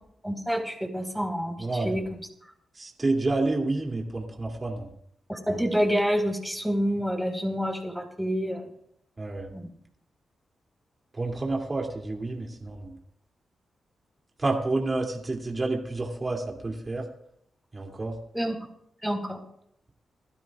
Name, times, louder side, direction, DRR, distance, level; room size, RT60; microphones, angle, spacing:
voice 1, 0.2-2.0 5.3-8.7 9.5-9.7 18.3-18.6 19.0-19.4, equal, 5° right, 2 dB, 5.0 m, -28 dB
voice 2, 1.6-2.0 2.7-4.9 9.2-9.5 11.1-13.0 14.4-17.0 17.7-18.2, right 2 dB, 35° right, 1 dB, 3.0 m, -29 dB
26.5 x 12.5 x 2.5 m, 0.71 s
supercardioid pair, 40°, 0 cm